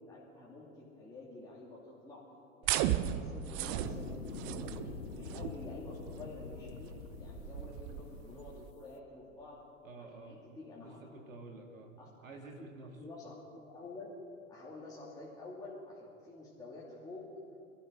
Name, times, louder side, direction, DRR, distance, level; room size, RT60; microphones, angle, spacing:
voice 1, 0.0-2.2 2.6-2.8 3.1-4.2 4.6-9.6 10.0-11.0 12.0-12.1 12.6-12.7 12.9-14.1 14.5-17.3, left 2 dB, 10° left, -7 dB, 2.6 m, -49 dB
sound 1, 2.6-8.7, right 11 dB, 30° right, 0.6 m, -37 dB
sound 2, 3.8-8.8, left 7 dB, 90° left, 0.6 m, -46 dB
voice 2, 9.8-10.4 10.8-11.9 12.2-12.9, right 3 dB, 70° right, 2 dB, 2.6 m, -50 dB
25.5 x 13.0 x 3.9 m, 2.7 s
figure-of-eight pair, 95°, 41 cm